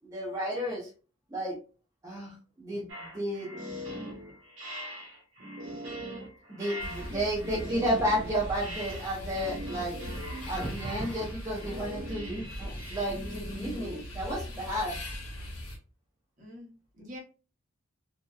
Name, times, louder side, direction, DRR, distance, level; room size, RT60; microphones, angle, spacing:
voice 1, 0.1-0.9 1.3-1.5 2.0-3.5 6.5-10.0 10.5-15.0, equal, 15° right, -6 dB, 0.5 m, -32 dB
sound 1, 2.9-14.0, equal, 60° right, 1.0 m, -41 dB
sound 2, 6.8-15.8, equal, 85° left, 0.9 m, -40 dB
voice 2, 16.4-17.2, left 1 dB, 35° right, -3 dB, 0.9 m, -45 dB
2.7 x 2.1 x 2.2 m, 0.35 s
head